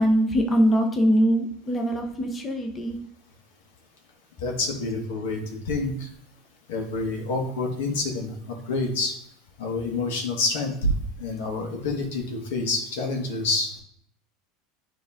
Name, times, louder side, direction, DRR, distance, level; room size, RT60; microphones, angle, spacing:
voice 1, 0.0-3.0, equal, 15° left, 3 dB, 0.9 m, -22 dB
voice 2, 4.4-5.4 5.7-6.1 6.7-9.1 9.6-10.9 11.2-13.7, left 3 dB, 85° left, 1 dB, 1.8 m, -27 dB
9.7 x 3.6 x 3.6 m, 0.67 s
supercardioid pair, 150°, 0 cm